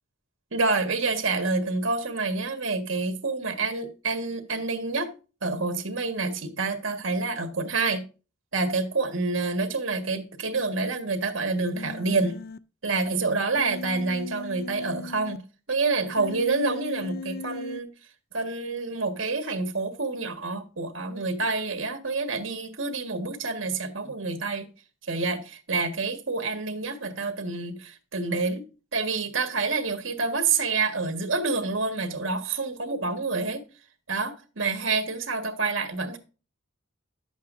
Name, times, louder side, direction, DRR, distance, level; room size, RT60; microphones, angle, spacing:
voice 1, 0.5-5.1 5.4-8.0 8.5-12.4 12.8-15.4 15.7-17.9 18.3-24.7 25.1-28.6 28.9-33.7 34.1-36.2, right 3 dB, 70° right, 1.6 m, -28 dB
Human voice, 11.7-12.6 13.6-15.4 16.2-17.8, left 3 dB, 50° left, 0.4 m, -38 dB
11.0 x 8.2 x 2.6 m
head